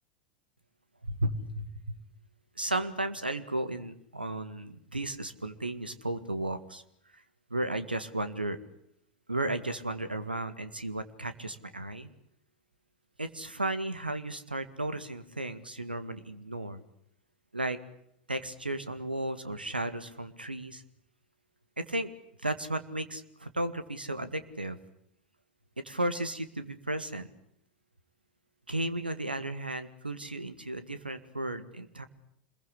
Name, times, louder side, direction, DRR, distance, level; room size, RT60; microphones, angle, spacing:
voice 1, 1.0-2.0 2.6-6.8 7.1-7.2 7.5-8.6 9.3-12.1 13.2-16.8 17.5-17.8 18.3-20.8 21.8-22.1 22.4-24.8 25.8-27.3 28.7-32.0, right 1 dB, 85° right, 11 dB, 2.0 m, -34 dB
27.0 x 22.0 x 8.2 m, 0.73 s
figure-of-eight pair, 85°, 5 cm